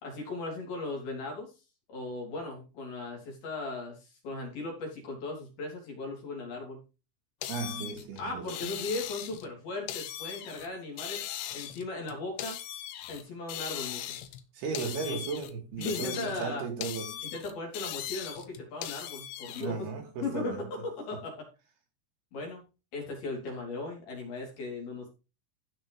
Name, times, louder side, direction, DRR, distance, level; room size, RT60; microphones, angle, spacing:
voice 1, 0.0-1.5 1.9-6.8 8.2-11.2 11.5-12.6 13.1-14.2 15.1-15.2 15.8-16.7 17.2-19.9 20.2-20.6 21.1-21.5 22.3-22.6 22.9-25.1, left 3 dB, 55° left, 5.2 m, -37 dB
sound 1, 7.4-9.5 9.9-10.7 11.0-13.2 13.5-14.4 14.8-16.5 16.8-19.7, left 12 dB, 85° left, 3.5 m, -39 dB
voice 2, 7.5-8.7 14.5-17.1 19.6-20.7, right 5 dB, 65° right, 3.2 m, -36 dB
15.5 x 5.9 x 3.4 m
omnidirectional pair, 5.4 m